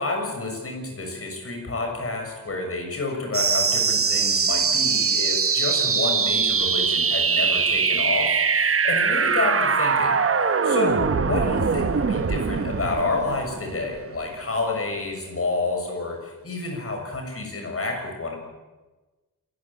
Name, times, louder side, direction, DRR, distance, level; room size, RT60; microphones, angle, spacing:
voice 1, 0.0-10.2 10.6-18.4, left 3 dB, 40° left, 2 dB, 6.8 m, -29 dB
sound 1, 3.3-14.4, right 5 dB, 40° right, 1.1 m, -22 dB
27.5 x 14.5 x 8.7 m, 1.2 s
wide cardioid pair, 145°, 34 cm